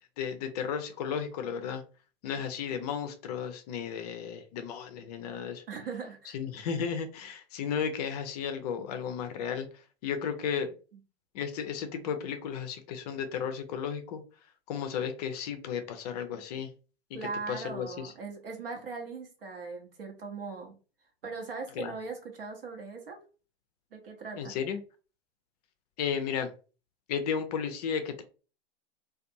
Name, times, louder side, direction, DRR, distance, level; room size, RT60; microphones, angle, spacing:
voice 1, 0.2-1.8 2.2-5.6 6.3-9.7 10.0-10.7 11.3-14.2 14.7-16.7 17.5-18.1 21.8-21.9 24.4-24.8 26.0-26.5 27.1-28.2, left 7 dB, 40° left, 0.4 m, -34 dB
voice 2, 5.7-6.4 17.1-20.7 21.2-23.2 23.9-24.5, right 4 dB, 65° right, 0.9 m, -39 dB
2.5 x 2.3 x 2.7 m
figure-of-eight pair, 95°, 31 cm